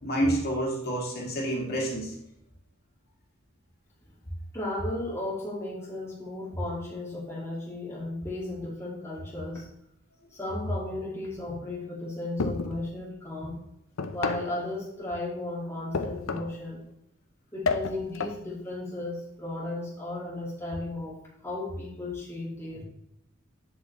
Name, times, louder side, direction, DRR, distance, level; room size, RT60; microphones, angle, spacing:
voice 1, 0.0-2.1, right 1 dB, 50° left, -2 dB, 2.1 m, -28 dB
voice 2, 4.5-9.6 10.3-13.6 14.1-16.8 17.5-22.8, left 2 dB, 15° left, -5 dB, 1.8 m, -35 dB
sound 1, 12.4-12.9 14.0-14.6 15.9-16.6 17.6-18.4, left 4 dB, 70° left, 0.6 m, -30 dB
7.5 x 7.1 x 3.0 m, 0.78 s
head